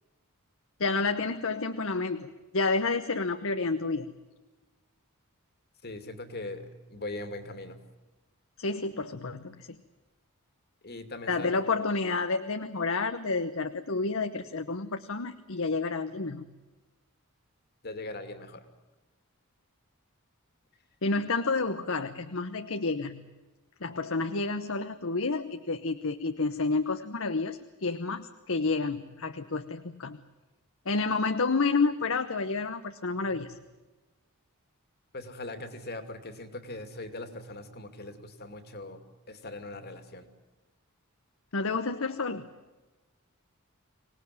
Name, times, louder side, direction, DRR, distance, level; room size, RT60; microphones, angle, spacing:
voice 1, 0.8-4.1 8.6-9.8 11.3-16.5 21.0-23.2 23.8-30.2 30.8-33.6 41.5-42.5, left 3 dB, 65° left, 8 dB, 1.0 m, -30 dB
voice 2, 5.8-7.8 10.8-11.5 17.8-18.7 35.1-39.0 39.3-40.3, left 2 dB, 45° left, 9 dB, 2.5 m, -40 dB
25.5 x 19.0 x 9.4 m, 1.2 s
head